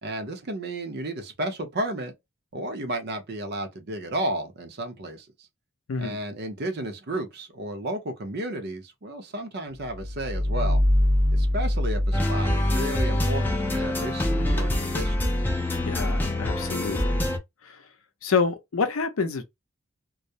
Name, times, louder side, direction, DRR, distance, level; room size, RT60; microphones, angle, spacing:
voice 1, 0.0-2.1 2.5-5.5 6.0-10.8 11.3-15.2, right 1 dB, 50° right, 0.6 m, -33 dB
sound 1, 9.8-14.5, left 1 dB, 85° right, 0.8 m, -25 dB
sound 2, 12.1-17.4, left 1 dB, 10° left, 0.5 m, -25 dB
voice 2, 15.9-17.2 17.6-17.9 18.2-19.4, left 5 dB, 75° left, 0.5 m, -28 dB
2.3 x 2.0 x 2.7 m
head